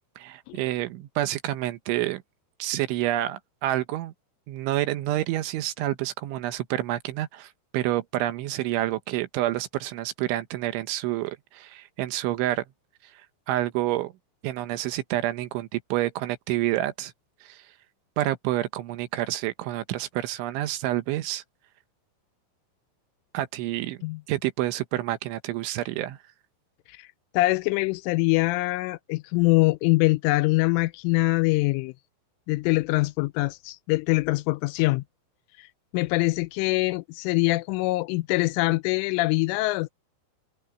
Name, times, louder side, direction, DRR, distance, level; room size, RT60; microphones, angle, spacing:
voice 1, 0.2-2.2 2.6-4.1 4.5-12.6 13.1-13.2 13.5-14.1 14.4-17.1 17.4-17.7 18.2-21.4 23.3-24.0 24.3-26.2, right 15 dB, 75° right, 3.3 m, -28 dB
voice 2, 27.3-31.9 32.5-35.0 35.6-35.7 35.9-39.9, left 22 dB, 85° left, 2.9 m, -24 dB
omnidirectional pair, 5.8 m